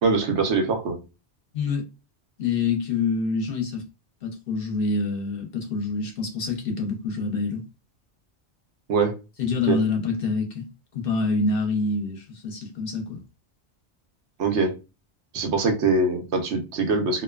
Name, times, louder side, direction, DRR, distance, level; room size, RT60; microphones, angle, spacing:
voice 1, 0.0-1.0 8.9-9.2 9.7-9.8 14.4-14.8 15.3-17.2, right 3 dB, 85° right, 1.0 m, -23 dB
voice 2, 2.4-3.8 4.2-7.6 9.4-10.7 10.9-13.2, left 4 dB, 60° left, 0.8 m, -26 dB
2.5 x 2.2 x 2.3 m
omnidirectional pair, 1.1 m